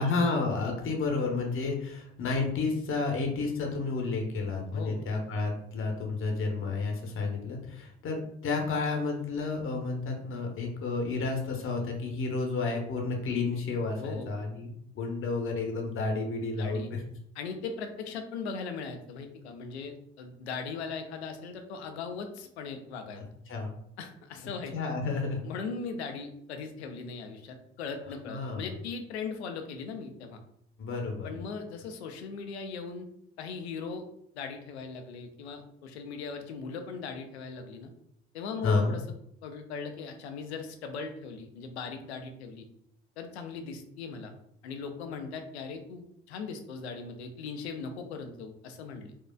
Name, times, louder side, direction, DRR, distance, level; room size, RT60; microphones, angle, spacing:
voice 1, 0.0-17.0 23.5-23.7 24.7-25.4 28.3-28.7 30.8-31.3 38.6-38.9, left 3 dB, 40° left, 1 dB, 0.8 m, -31 dB
voice 2, 4.7-5.1 14.0-14.3 16.6-16.9 17.4-23.2 24.0-24.7 25.4-30.4 31.2-33.1 33.4-34.0 34.3-37.9 38.3-39.0 39.4-42.7 43.2-44.3 44.6-49.1, left 5 dB, 80° left, 6 dB, 0.5 m, -39 dB
4.3 x 2.3 x 2.2 m, 0.72 s
hypercardioid pair, 50°, 32 cm